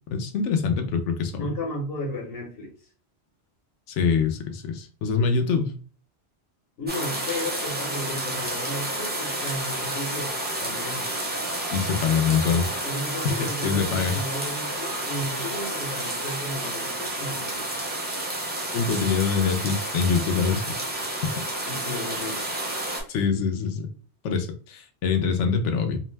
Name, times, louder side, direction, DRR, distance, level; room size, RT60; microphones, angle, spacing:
voice 1, 0.1-1.5 3.9-5.7 11.7-12.6 13.6-14.2 18.7-20.8 23.1-23.9 24.2-26.0, left 5 dB, 85° left, 6 dB, 0.9 m, -24 dB
voice 2, 1.4-2.7 6.8-10.3 10.6-11.1 12.3-17.8 21.6-22.5, left 1 dB, 60° left, 0 dB, 1.1 m, -34 dB
sound 1, 6.9-23.0, right 1 dB, 15° right, 0.4 m, -30 dB
2.6 x 2.1 x 3.1 m, 0.40 s
omnidirectional pair, 1.2 m